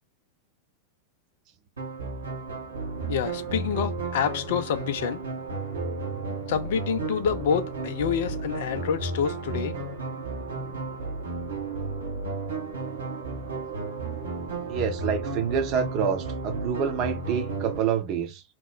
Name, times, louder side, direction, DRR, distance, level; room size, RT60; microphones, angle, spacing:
sound 1, 1.8-17.8, right 3 dB, 75° right, 0.9 m, -33 dB
voice 1, 3.1-5.2 6.5-9.8, left 7 dB, 55° left, 0.4 m, -27 dB
voice 2, 14.7-18.4, right 7 dB, 40° right, 0.7 m, -27 dB
2.9 x 2.1 x 3.5 m
figure-of-eight pair, 90°, 0 cm